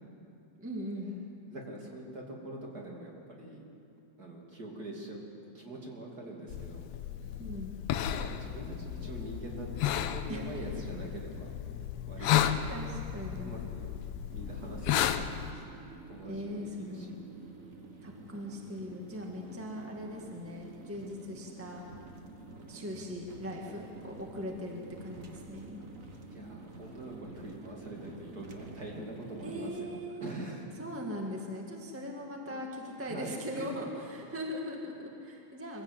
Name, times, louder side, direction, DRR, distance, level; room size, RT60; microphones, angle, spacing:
voice 1, 0.6-1.1 7.2-7.7 10.3-10.5 12.2-13.5 16.2-17.2 18.0-21.8 22.7-25.9 29.4-30.3 30.8-35.8, equal, 10° right, 0 dB, 0.7 m, -40 dB
voice 2, 1.5-3.6 4.2-5.2 5.5-6.9 8.2-11.5 12.1-12.5 13.4-13.9 14.3-15.6 16.1-17.1 26.3-30.9 32.5-32.6 33.0-33.8, right 2 dB, 30° right, -1 dB, 2.9 m, -44 dB
sound 1, 6.5-15.5, left 10 dB, 85° left, 1.5 m, -33 dB
sound 2, 14.3-29.8, right 2 dB, 65° right, 0.8 m, -49 dB
23.5 x 16.0 x 8.1 m, 2.6 s
omnidirectional pair, 3.9 m